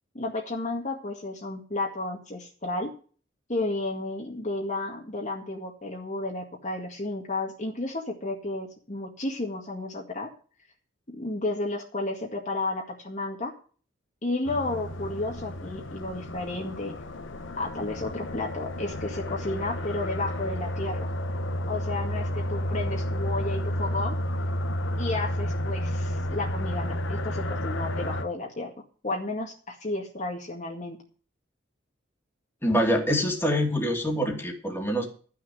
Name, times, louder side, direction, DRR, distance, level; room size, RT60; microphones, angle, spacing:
voice 1, 0.1-3.0 3.5-10.3 11.1-13.5 14.2-16.9 17.6-21.1 21.7-24.2 25.0-28.7 29.0-31.0, left 2 dB, 40° left, 0 dB, 2.0 m, -32 dB
sound 1, 14.5-28.3, equal, 75° left, 1.1 m, -31 dB
voice 2, 32.6-35.1, equal, 10° left, 0 dB, 2.8 m, -25 dB
13.0 x 6.4 x 8.0 m, 0.40 s
head